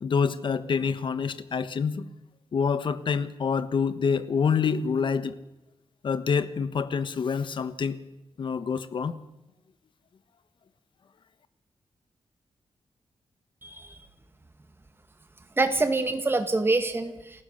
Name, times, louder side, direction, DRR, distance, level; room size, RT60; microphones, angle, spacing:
voice 1, 0.0-2.1 2.5-5.4 6.0-8.0 8.4-9.1, left 6 dB, 55° left, 13 dB, 1.2 m, -27 dB
voice 2, 13.6-14.1 15.6-17.4, right 3 dB, 20° right, 8 dB, 1.9 m, -26 dB
28.5 x 15.5 x 6.5 m, 0.95 s
wide cardioid pair, 170°, 10 cm